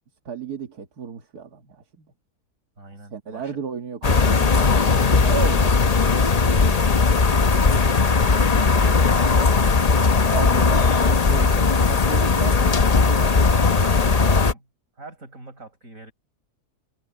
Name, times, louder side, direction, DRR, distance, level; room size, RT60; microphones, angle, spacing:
voice 1, 0.3-2.1 3.1-6.0 10.3-13.2, right 6 dB, 85° right, 2.2 m, -34 dB
voice 2, 2.8-3.6 6.4-7.7 8.0-11.0 13.4-14.7 15.0-16.1, right 3 dB, 60° right, 6.3 m, -43 dB
sound 1, 4.0-14.5, left 4 dB, 35° left, 0.7 m, -18 dB
omnidirectional pair, 1.6 m